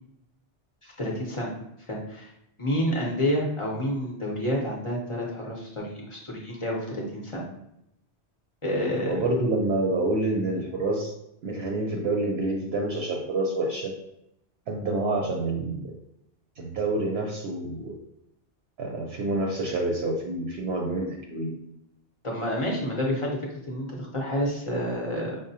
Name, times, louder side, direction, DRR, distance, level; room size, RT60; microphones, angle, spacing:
voice 1, 0.8-1.5 1.9-2.3 2.6-7.4 8.6-9.2 22.2-25.4, equal, 35° left, -2 dB, 0.6 m, -29 dB
voice 2, 9.1-11.1 11.4-13.9 14.7-15.9 16.6-18.0 18.8-21.5, right 2 dB, 70° right, 0 dB, 0.8 m, -27 dB
4.9 x 2.1 x 2.7 m, 0.79 s
omnidirectional pair, 1.2 m